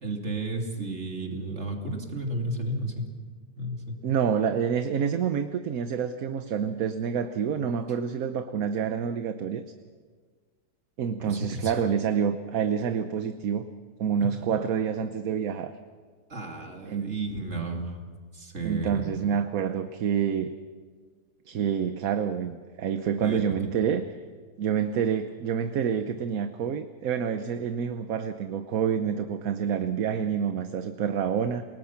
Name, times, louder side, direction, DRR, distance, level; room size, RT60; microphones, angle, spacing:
voice 1, 0.0-3.1 3.6-4.0 11.2-11.7 14.2-14.4 16.3-18.0 18.3-19.2 23.2-23.4, right 2 dB, 45° right, 2 dB, 3.1 m, -33 dB
voice 2, 4.0-9.6 11.0-13.7 14.0-15.7 16.9-17.1 18.6-20.5 21.5-24.1 24.6-31.6, right 7 dB, 65° right, 9 dB, 1.2 m, -27 dB
28.5 x 19.5 x 5.8 m, 1.5 s
omnidirectional pair, 1.7 m